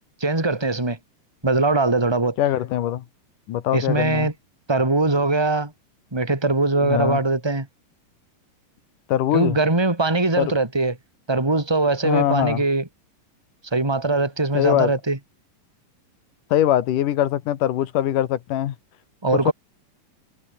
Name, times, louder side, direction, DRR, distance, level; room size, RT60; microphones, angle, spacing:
voice 1, 0.2-1.0 1.4-2.4 3.7-4.3 4.7-5.7 6.1-7.7 9.3-11.0 11.3-12.9 13.7-15.2 19.2-19.5, right 3 dB, 5° right, 3.5 m, -21 dB
voice 2, 2.4-3.0 3.5-4.3 6.8-7.2 9.1-9.6 10.4-10.5 12.0-12.6 14.5-14.9 16.5-18.8 19.5-19.6, left 12 dB, 75° left, 2.8 m, -22 dB
omnidirectional pair, 3.8 m